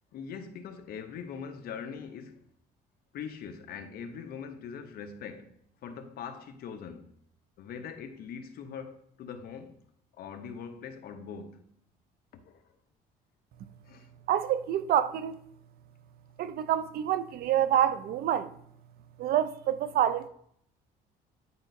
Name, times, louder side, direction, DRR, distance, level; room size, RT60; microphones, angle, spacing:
voice 1, 0.1-2.4 3.1-7.1 7.6-9.8 10.1-11.7 12.4-12.6 13.8-14.1, left 6 dB, 65° left, 0.8 m, -42 dB
voice 2, 14.3-15.4 16.4-18.6 19.2-20.3, right 10 dB, 65° right, 0.5 m, -27 dB
9.6 x 4.9 x 2.6 m
cardioid pair, 110°, 17 cm